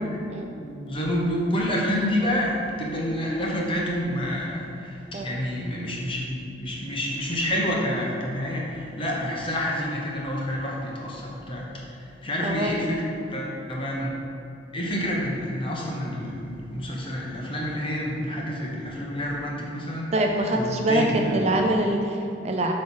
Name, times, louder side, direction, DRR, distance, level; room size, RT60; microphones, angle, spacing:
voice 1, 0.6-13.0 13.3-14.1 14.7-20.1 20.5-21.6, equal, 30° left, -3 dB, 1.1 m, -28 dB
voice 2, 12.4-12.7 20.1-22.7, right 1 dB, 35° right, 2 dB, 0.5 m, -24 dB
8.3 x 3.3 x 5.5 m, 2.6 s
head